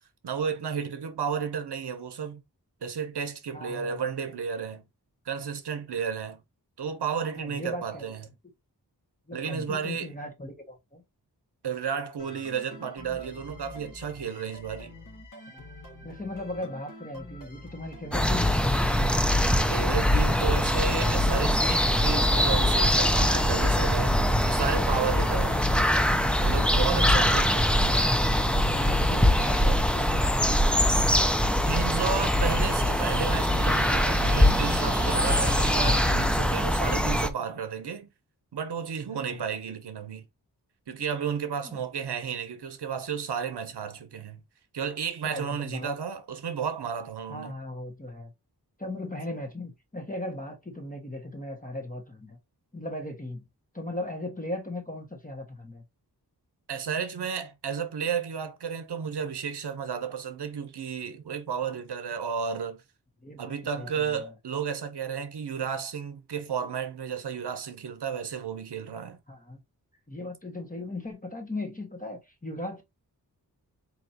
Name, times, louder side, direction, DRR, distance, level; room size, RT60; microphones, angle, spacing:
voice 1, 0.2-2.4 2.8-4.8 5.2-6.4 6.8-8.2 9.3-10.1 11.6-15.0 19.7-24.1 24.4-25.6 26.4-27.7 31.7-38.1 38.5-40.3 40.9-44.4 44.7-47.6 56.7-62.8 63.4-69.2, right 7 dB, 80° right, 0.8 m, -32 dB
voice 2, 3.5-4.1 7.4-8.1 9.3-11.0 15.5-15.6 16.0-18.8 23.3-23.4 25.0-25.6 26.7-27.5 27.8-28.1 28.6-30.9 39.2-39.4 41.6-41.8 45.2-45.9 47.3-48.3 48.8-52.4 52.7-53.4 53.7-55.8 63.2-64.3 69.3-69.6 70.1-72.8, left 1 dB, 20° left, 1.3 m, -38 dB
sound 1, 12.2-29.7, left 1 dB, 50° left, 1.9 m, -47 dB
sound 2, 18.1-37.3, left 1 dB, 5° left, 0.5 m, -23 dB
sound 3, 31.5-36.1, right 2 dB, 20° right, 1.7 m, -35 dB
4.3 x 2.9 x 2.8 m
wide cardioid pair, 65°, 39 cm